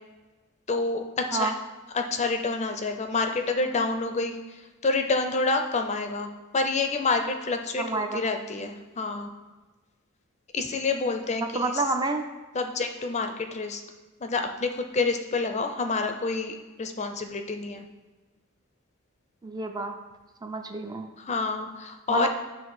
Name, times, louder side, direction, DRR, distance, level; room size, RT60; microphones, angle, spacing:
voice 1, 0.7-1.5 1.9-4.4 4.8-9.3 10.5-11.8 12.5-13.8 14.2-17.9 21.2-22.3, left 3 dB, 30° left, 5 dB, 0.5 m, -28 dB
voice 2, 7.8-8.2 11.5-12.2 19.4-20.0 20.4-21.1 22.1-22.3, right 3 dB, 20° right, 4 dB, 0.4 m, -28 dB
9.1 x 3.2 x 4.8 m, 1.2 s
head